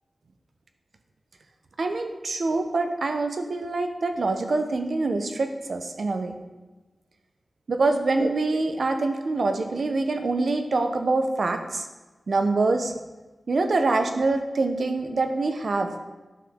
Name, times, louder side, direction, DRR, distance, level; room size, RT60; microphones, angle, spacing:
voice 1, 1.8-6.4 7.7-11.9 12.3-12.9 13.5-15.9, right 3 dB, 65° right, 6 dB, 0.7 m, -25 dB
10.5 x 5.8 x 3.6 m, 1.2 s
wide cardioid pair, 115°, 0 cm